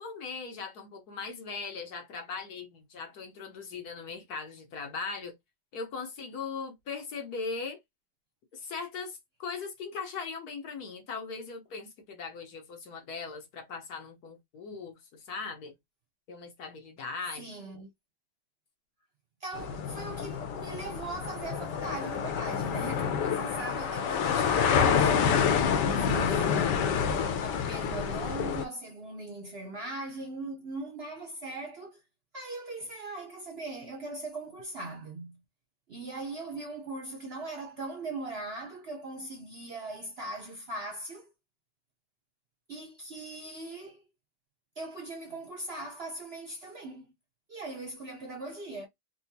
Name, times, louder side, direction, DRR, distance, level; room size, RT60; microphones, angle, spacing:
voice 1, 0.0-5.3 5.7-7.8 8.5-15.7 16.3-17.5, left 4 dB, 65° left, 1.4 m, -39 dB
voice 2, 17.4-17.9 19.4-32.0 32.3-35.4 35.9-41.3 42.7-44.0 44.8-47.1 47.5-48.9, right 2 dB, 50° right, 0.8 m, -40 dB
sound 1, 19.5-28.6, left 7 dB, 90° left, 1.3 m, -28 dB
4.1 x 2.3 x 2.7 m
omnidirectional pair, 1.8 m